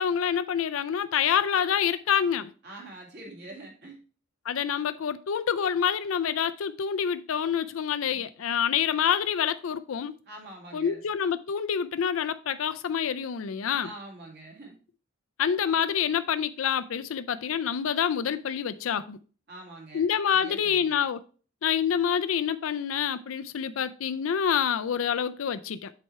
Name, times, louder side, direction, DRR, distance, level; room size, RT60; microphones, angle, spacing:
voice 1, 0.0-2.5 4.5-10.1 10.7-13.9 15.4-19.2 19.9-21.2 21.6-25.9, left 8 dB, 80° left, 0.4 m, -27 dB
voice 2, 2.6-4.0 8.1-8.3 10.3-11.0 13.8-14.8 19.5-21.0, right 2 dB, 55° right, 2.4 m, -45 dB
7.5 x 4.3 x 4.6 m
head